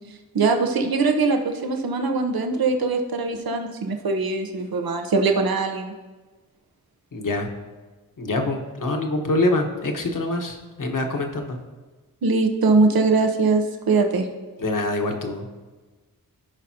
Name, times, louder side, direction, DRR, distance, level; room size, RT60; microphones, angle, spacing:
voice 1, 0.3-5.9 12.2-14.3, right 3 dB, 85° right, 4 dB, 0.9 m, -21 dB
voice 2, 7.1-7.5 8.2-11.6 14.6-15.5, left 2 dB, 60° left, 3 dB, 1.3 m, -25 dB
15.0 x 5.3 x 2.9 m, 1.3 s
wide cardioid pair, 70°, 35 cm